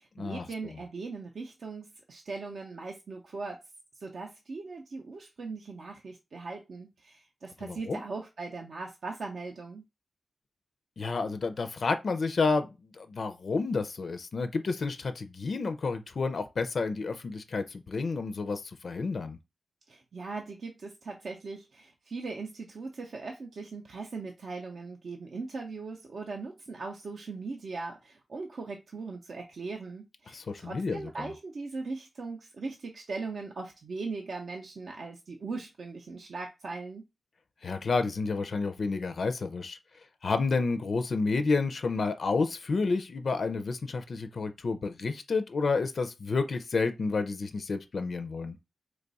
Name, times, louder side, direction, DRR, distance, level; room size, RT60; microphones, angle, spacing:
voice 1, 0.0-3.6 4.0-9.8 19.9-37.0, right 3 dB, 60° right, 0.5 m, -39 dB
voice 2, 7.6-8.0 11.0-19.4 30.3-31.3 37.6-39.8 40.2-48.6, left 4 dB, 55° left, 0.4 m, -30 dB
3.1 x 2.3 x 3.9 m
wide cardioid pair, 95°, 0 cm